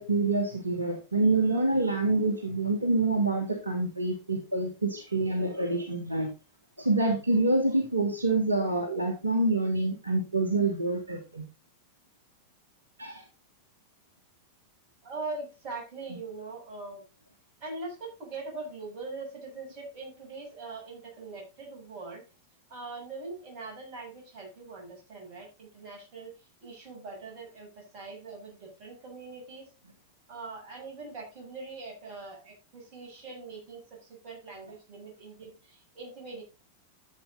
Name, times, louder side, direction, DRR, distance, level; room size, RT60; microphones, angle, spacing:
voice 1, 0.0-6.3 6.8-11.4 13.0-13.2, right 2 dB, 80° right, 4 dB, 1.7 m, -27 dB
voice 2, 15.0-17.0 17.6-22.2 22.7-26.3 26.6-29.7 30.3-36.4, right 3 dB, 40° right, 0 dB, 7.4 m, -42 dB
12.5 x 7.9 x 4.0 m, 0.28 s
figure-of-eight pair, 90°, 0 cm